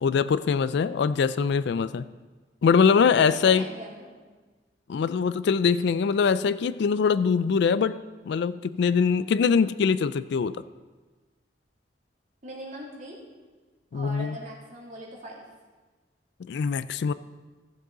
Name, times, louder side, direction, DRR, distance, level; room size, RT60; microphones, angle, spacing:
voice 1, 0.0-2.0 2.6-3.6 4.9-10.6 13.9-14.4 16.4-17.1, left 6 dB, 65° left, 15 dB, 0.3 m, -23 dB
voice 2, 3.1-4.2 12.4-13.2 13.9-15.4, right 1 dB, 45° right, -4 dB, 2.7 m, -41 dB
15.0 x 7.4 x 3.9 m, 1.3 s
head